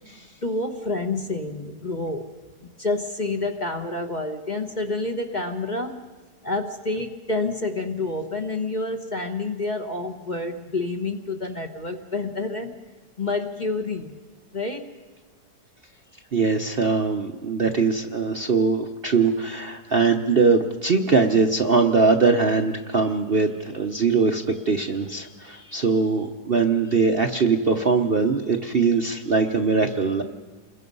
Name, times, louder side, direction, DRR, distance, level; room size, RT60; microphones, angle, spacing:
voice 1, 0.4-2.2 2.8-6.0 6.4-12.8 13.2-14.2 14.5-14.9, left 2 dB, 30° left, 4 dB, 1.1 m, -28 dB
voice 2, 16.3-30.2, right 4 dB, 45° right, 4 dB, 0.9 m, -21 dB
28.5 x 21.5 x 5.4 m, 1.3 s
omnidirectional pair, 1.8 m